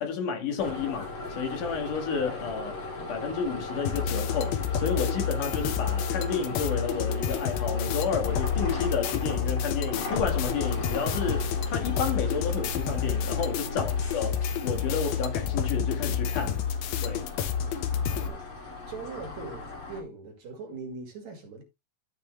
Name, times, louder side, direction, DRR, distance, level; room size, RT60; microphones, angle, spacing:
voice 1, 0.0-2.8 3.1-16.6 17.0-17.3, left 5 dB, 65° left, 3.1 m, -31 dB
sound 1, 0.6-20.0, left 3 dB, 40° left, 3.0 m, -37 dB
sound 2, 3.8-18.3, left 7 dB, 85° left, 3.0 m, -29 dB
voice 2, 13.6-13.9 18.1-18.4 18.9-21.6, right 4 dB, 55° right, 3.4 m, -41 dB
13.5 x 5.5 x 3.2 m
omnidirectional pair, 4.1 m